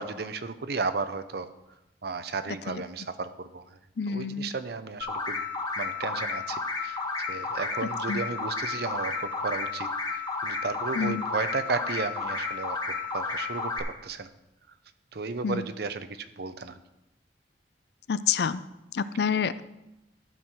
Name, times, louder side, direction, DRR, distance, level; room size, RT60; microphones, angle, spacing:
voice 1, 0.0-1.5 2.0-3.6 4.1-5.4 5.8-9.9 10.2-12.8 13.1-14.3 15.1-16.8, right 4 dB, 60° right, 11 dB, 0.6 m, -34 dB
voice 2, 4.0-4.5 8.1-8.2 11.0-11.2 15.4-15.6 18.1-18.6 18.9-19.6, left 6 dB, 60° left, 14 dB, 0.4 m, -28 dB
sound 1, 5.0-13.8, left 4 dB, 25° left, 1.1 m, -32 dB
12.5 x 4.5 x 6.3 m, 0.92 s
head